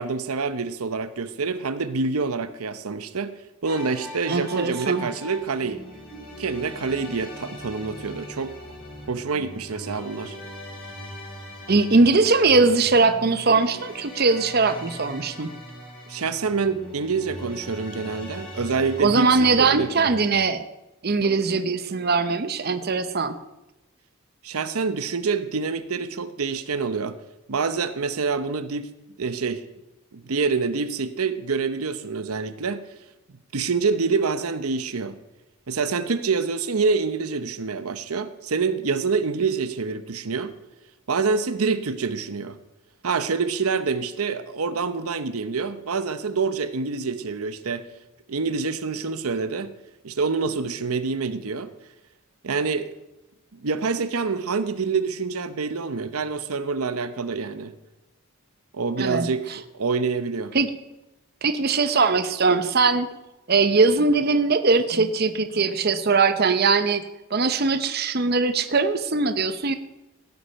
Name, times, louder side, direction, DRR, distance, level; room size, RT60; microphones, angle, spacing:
voice 1, 0.0-3.3 3.6-5.8 6.4-8.6 9.1-10.3 16.1-20.1 24.4-27.2 27.5-28.9 29.2-29.6 30.1-32.8 33.5-35.2 35.7-40.5 41.1-42.6 43.0-47.9 48.3-49.7 50.0-51.7 52.4-52.9 53.5-57.7 58.7-60.5, right 4 dB, 90° right, 12 dB, 0.8 m, -26 dB
sound 1, 3.6-20.3, equal, 45° left, 6.4 m, -40 dB
voice 2, 4.3-5.1 11.7-15.5 19.0-20.6 21.0-23.4 59.0-59.3 60.5-60.7 61.4-63.1 63.5-67.0 67.3-69.7, right 4 dB, 45° right, 10 dB, 0.7 m, -21 dB
16.5 x 8.3 x 5.6 m, 0.95 s
head